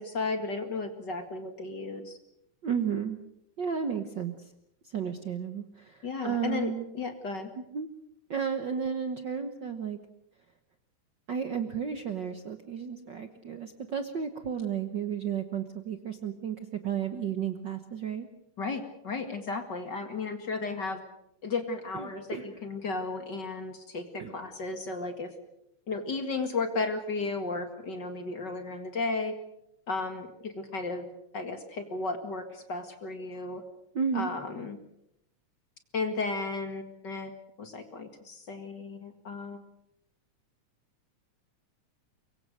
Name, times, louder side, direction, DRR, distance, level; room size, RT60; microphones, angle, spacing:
voice 1, 0.0-2.2 6.0-7.5 18.6-21.0 21.4-24.0 24.3-25.3 25.9-29.3 29.9-31.0 31.3-33.6 34.1-34.8 35.9-37.3 37.6-39.6, left 3 dB, 40° left, 7 dB, 2.3 m, -34 dB
voice 2, 2.6-3.2 3.6-4.3 4.8-6.9 7.5-7.9 8.3-10.0 11.3-16.6 16.8-18.3 21.9-22.5 24.2-24.3 33.9-34.3, right 7 dB, 55° right, 8 dB, 1.4 m, -33 dB
24.0 x 23.0 x 6.5 m, 0.79 s
omnidirectional pair, 3.4 m